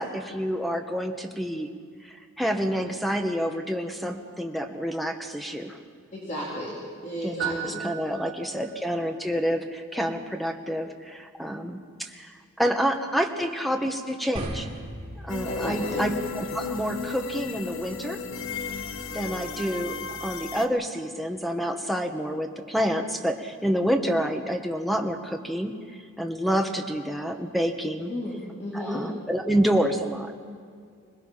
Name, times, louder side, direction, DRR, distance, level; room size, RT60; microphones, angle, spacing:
voice 1, 0.0-1.7 2.1-5.8 7.2-14.7 15.2-18.2 19.1-19.9 20.2-28.1 28.7-30.4, equal, ahead, 4 dB, 1.3 m, -28 dB
voice 2, 6.1-6.7 7.0-7.8 15.5-16.0 28.1-29.0, equal, 35° left, -7 dB, 3.8 m, -33 dB
sound 1, 7.4-8.9, right 10 dB, 70° right, 2.3 m, -35 dB
sound 2, 14.4-20.5, right 1 dB, 30° right, 3.9 m, -42 dB
sound 3, 15.3-20.7, left 5 dB, 70° left, 1.1 m, -34 dB
26.0 x 20.0 x 5.8 m, 2.2 s
head